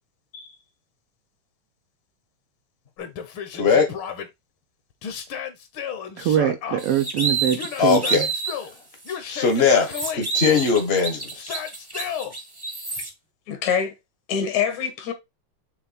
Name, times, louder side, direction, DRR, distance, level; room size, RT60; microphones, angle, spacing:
Yell, 3.0-4.3 5.0-6.8 7.6-8.7 9.1-10.3 11.3-12.3, left 8 dB, 60° left, 1.4 m, -33 dB
voice 1, 3.6-3.9 7.8-8.2 9.3-11.6, left 5 dB, 40° left, 0.8 m, -20 dB
voice 2, 6.2-8.3, right 10 dB, 75° right, 1.4 m, -23 dB
sound 1, 6.8-8.6 9.0-9.1 9.5-13.1, right 5 dB, 15° right, 0.7 m, -29 dB
voice 3, 13.5-13.9 14.3-15.1, left 7 dB, 75° left, 2.6 m, -25 dB
7.0 x 3.3 x 4.2 m
omnidirectional pair, 3.3 m